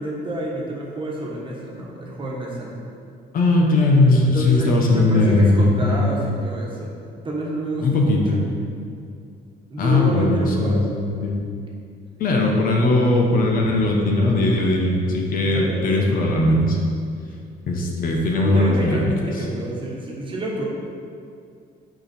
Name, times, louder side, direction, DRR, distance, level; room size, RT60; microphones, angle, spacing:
voice 1, 0.0-2.8 4.3-8.5 9.7-10.8 12.6-13.0 15.4-16.2 18.0-20.6, right 1 dB, 30° right, -3 dB, 1.4 m, -29 dB
voice 2, 3.3-6.1 7.8-8.4 9.8-10.8 11.1-11.4 12.2-16.8 17.7-19.1, left 2 dB, 55° left, 0 dB, 1.1 m, -19 dB
6.3 x 5.0 x 4.4 m, 2.3 s
cardioid pair, 110°, 17 cm